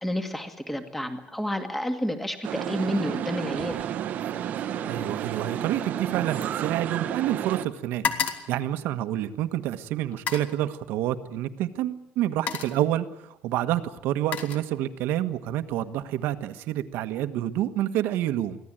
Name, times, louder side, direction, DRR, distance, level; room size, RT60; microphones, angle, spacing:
voice 1, 0.0-3.8, equal, 5° left, 6 dB, 2.1 m, -30 dB
sound 1, 2.4-7.7, right 10 dB, 50° right, 1.2 m, -31 dB
sound 2, 3.5-3.9 4.2-7.3 7.6-9.5 10.1-10.6 11.6-11.8 12.2-12.9 13.8-15.1 15.5-15.9, left 7 dB, 45° left, 2.2 m, -35 dB
voice 2, 4.8-8.0 8.5-18.6, right 13 dB, 75° right, 10 dB, 1.5 m, -28 dB
24.5 x 16.5 x 9.1 m, 0.85 s
cardioid pair, 170°, 4 cm